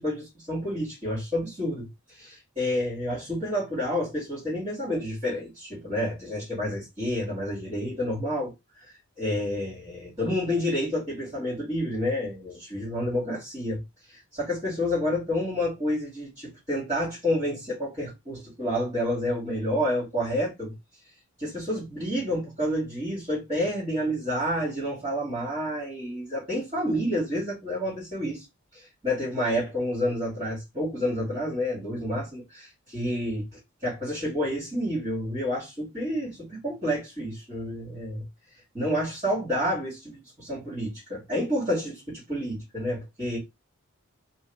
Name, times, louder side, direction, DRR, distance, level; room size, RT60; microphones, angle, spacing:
voice 1, 0.0-13.8 14.1-20.7 21.4-28.4 28.7-38.2 38.7-43.4, equal, 25° right, 2.3 m, -29 dB
3.6 x 2.7 x 3.5 m
head